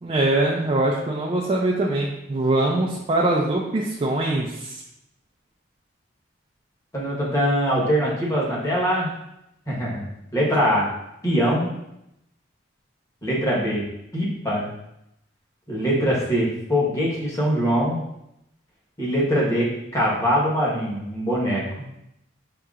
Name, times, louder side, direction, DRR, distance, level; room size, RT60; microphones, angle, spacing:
voice 1, 0.0-4.8, right 2 dB, 30° right, -3 dB, 0.4 m, -23 dB
voice 2, 6.9-9.1 9.7-10.1 10.3-10.9 11.2-11.7 13.2-13.8 14.1-14.7 15.7-18.0 19.0-21.6, equal, 15° left, -5 dB, 1.2 m, -22 dB
5.5 x 2.9 x 2.4 m, 0.82 s
head